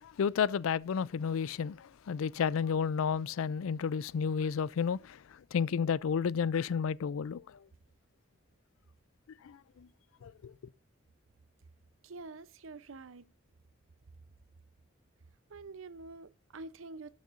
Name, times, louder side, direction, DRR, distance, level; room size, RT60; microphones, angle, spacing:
voice 1, 0.2-1.8 2.1-5.0 5.5-7.4 10.2-10.3, left 6 dB, 90° left, 0.4 m, -31 dB
voice 2, 12.0-13.2 15.5-17.1, right 3 dB, 85° right, 0.7 m, -47 dB
18.5 x 6.5 x 2.5 m
head